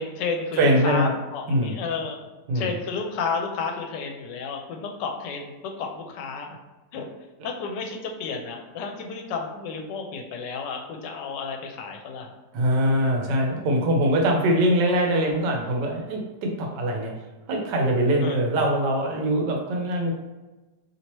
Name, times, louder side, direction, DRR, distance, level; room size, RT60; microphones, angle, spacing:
voice 1, 0.0-2.2 2.5-6.6 6.9-7.1 7.4-12.3 18.2-18.4, left 5 dB, 90° left, 3 dB, 1.2 m, -32 dB
voice 2, 0.6-1.1 1.5-1.7 2.5-2.7 12.5-17.1 17.5-20.1, right 1 dB, 80° right, 1 dB, 1.3 m, -22 dB
3.2 x 2.9 x 2.9 m, 1.2 s
omnidirectional pair, 1.8 m